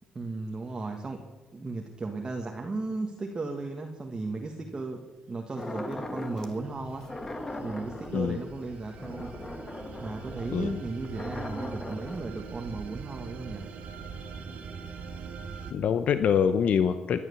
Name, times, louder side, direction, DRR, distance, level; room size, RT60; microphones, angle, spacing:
voice 1, 0.1-1.3 1.5-7.1 7.6-9.4 10.0-13.7, right 3 dB, 25° right, 2 dB, 1.6 m, -35 dB
sound 1, 5.6-6.6 7.0-12.2, left 2 dB, 20° left, 1.7 m, -39 dB
sound 2, 5.7-15.7, right 5 dB, 65° right, 2.3 m, -43 dB
voice 2, 15.7-17.2, left 7 dB, 60° left, 10 dB, 0.7 m, -24 dB
17.5 x 11.0 x 7.1 m, 1.3 s
cardioid pair, 95°, 3 cm